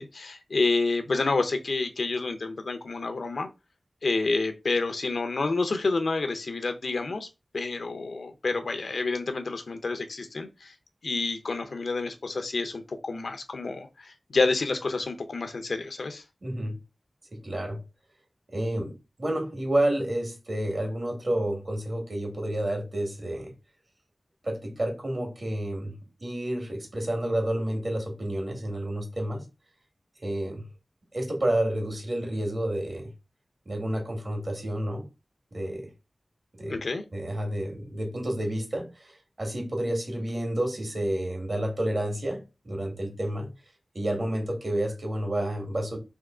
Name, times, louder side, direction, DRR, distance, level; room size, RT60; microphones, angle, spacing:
voice 1, 0.0-3.5 4.0-7.3 7.5-10.7 11.0-16.2 36.7-37.0, left 3 dB, 75° left, 0.6 m, -29 dB
voice 2, 16.4-16.8 17.3-17.8 18.5-23.5 24.4-29.4 30.2-30.7 31.1-33.1 33.7-35.1 35.5-35.9 36.5-36.8 37.1-43.5 43.9-46.0, right 1 dB, 50° right, 1.8 m, -30 dB
3.6 x 3.0 x 3.6 m
wide cardioid pair, 60°, 0 cm